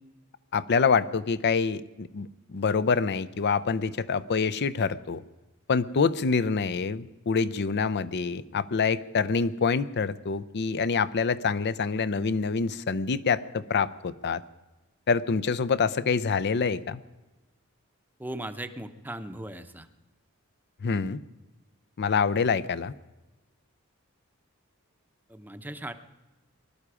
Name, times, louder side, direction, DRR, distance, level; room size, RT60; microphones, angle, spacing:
voice 1, 0.5-5.2 5.7-14.4 15.1-17.0 20.8-21.2 22.0-22.9, left 5 dB, 55° left, 16 dB, 0.5 m, -26 dB
voice 2, 18.2-19.9 25.3-25.9, right 1 dB, 10° right, 9 dB, 0.7 m, -38 dB
20.5 x 12.0 x 4.9 m, 1.1 s
head